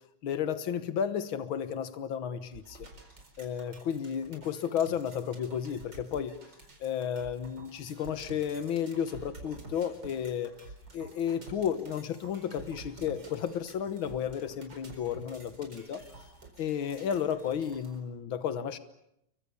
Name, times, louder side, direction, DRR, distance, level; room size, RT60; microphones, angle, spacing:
voice 1, 0.2-2.9 3.4-6.4 6.8-10.5 10.9-16.0 16.6-18.8, left 8 dB, 85° left, 11 dB, 2.0 m, -33 dB
sound 1, 2.5-18.0, right 2 dB, 60° right, 5.2 m, -50 dB
29.0 x 23.5 x 6.9 m, 0.80 s
omnidirectional pair, 2.2 m